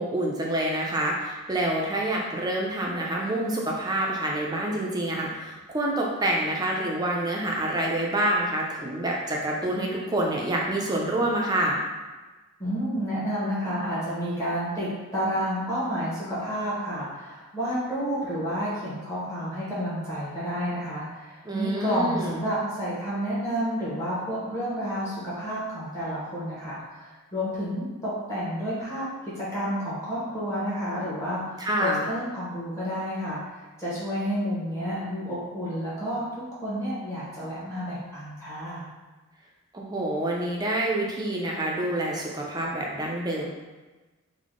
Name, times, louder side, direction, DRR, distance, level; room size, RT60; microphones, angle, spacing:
voice 1, 0.0-11.8 21.4-22.4 31.6-32.1 39.7-43.5, right 1 dB, 20° right, -2 dB, 0.4 m, -27 dB
voice 2, 12.6-29.1 29.3-38.8, equal, 15° left, -9 dB, 0.9 m, -30 dB
3.4 x 2.1 x 3.6 m, 1.2 s
head